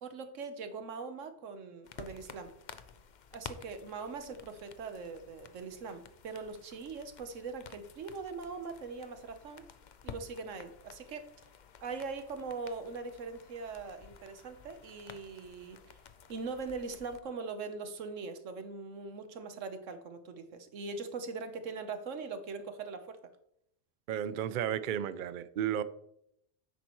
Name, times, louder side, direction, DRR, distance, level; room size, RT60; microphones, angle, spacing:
voice 1, 0.0-2.6 3.3-9.7 10.0-11.3 11.8-15.9 16.3-23.2, right 4 dB, 85° right, 9 dB, 1.3 m, -41 dB
sound 1, 1.8-17.2, left 6 dB, 50° left, 0.6 m, -52 dB
voice 2, 24.1-25.8, right 10 dB, 60° right, 15 dB, 0.5 m, -33 dB
10.5 x 8.1 x 3.1 m, 0.75 s
omnidirectional pair, 1.3 m